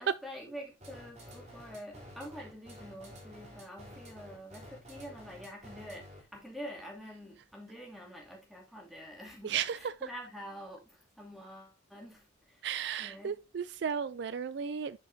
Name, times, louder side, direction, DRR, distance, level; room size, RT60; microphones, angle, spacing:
voice 1, 0.2-12.6 13.0-13.4, equal, ahead, 2.5 m, -47 dB
sound 1, 0.8-6.4, equal, 35° right, 3.0 m, -50 dB
voice 2, 9.4-10.1 12.6-15.0, right 7 dB, 55° right, 0.3 m, -35 dB
10.5 x 5.3 x 2.7 m
head